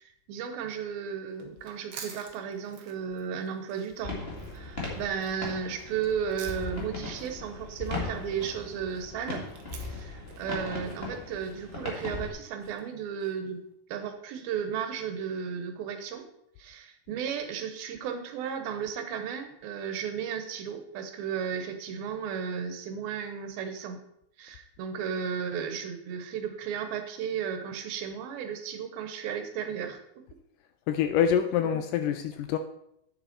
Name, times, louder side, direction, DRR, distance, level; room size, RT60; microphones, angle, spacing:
voice 1, 0.0-4.2 4.5-9.5 9.9-13.6 13.9-16.3 16.6-24.0 24.4-30.2 31.6-31.7, right 7 dB, 90° right, 7 dB, 2.9 m, -34 dB
sound 1, 1.3-13.5, right 6 dB, 70° right, 1.4 m, -51 dB
sound 2, 4.0-12.3, left 3 dB, 25° left, 1.5 m, -38 dB
voice 2, 30.9-32.6, left 8 dB, 80° left, 9 dB, 1.9 m, -26 dB
8.9 x 7.0 x 4.4 m, 0.79 s
omnidirectional pair, 4.1 m